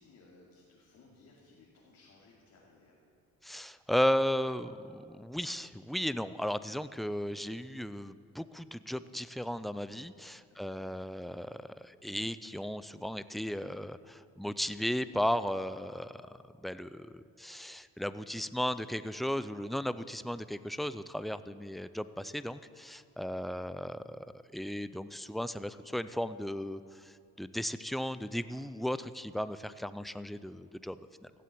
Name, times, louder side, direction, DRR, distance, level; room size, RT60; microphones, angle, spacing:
voice 1, 0.0-3.0 10.5-10.9, left 3 dB, 65° left, -5 dB, 2.8 m, -61 dB
voice 2, 3.4-31.3, equal, ahead, 14 dB, 0.4 m, -35 dB
15.0 x 7.6 x 8.4 m, 2.4 s
cardioid pair, 90°, 30 cm